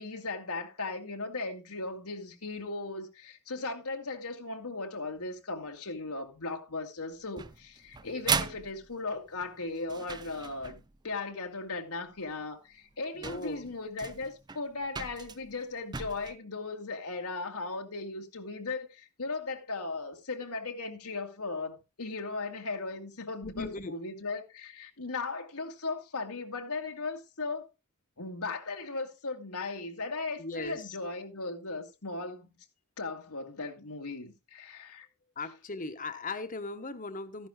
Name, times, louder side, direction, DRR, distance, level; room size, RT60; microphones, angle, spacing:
voice 1, 0.0-27.7 28.2-32.5 33.0-35.1, left 3 dB, 80° left, 2.2 m, -37 dB
sound 1, 7.4-11.0 12.3-12.4 12.9-13.0 13.2-16.3, right 5 dB, 20° right, 0.5 m, -36 dB
voice 2, 13.1-13.7 23.4-24.0 30.4-31.0 35.4-37.5, left 3 dB, 35° left, 1.3 m, -38 dB
14.5 x 11.0 x 2.3 m
head